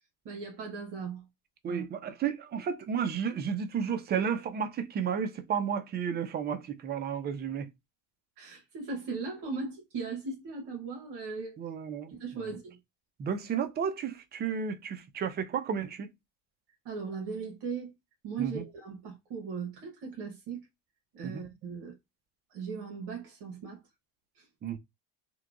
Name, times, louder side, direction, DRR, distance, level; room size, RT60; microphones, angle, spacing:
voice 1, 0.2-1.3 1.7-1.9 8.4-11.6 12.1-12.8 16.8-17.9 18.2-20.7 21.1-22.0 22.5-23.8 24.3-24.5, right 5 dB, 65° right, 1.1 m, -38 dB
voice 2, 1.6-7.7 11.6-12.5 13.2-16.1 18.4-18.6 21.2-21.4 24.6-24.8, right 7 dB, 25° right, 0.4 m, -32 dB
2.8 x 2.2 x 2.4 m
supercardioid pair, 105°, 44 cm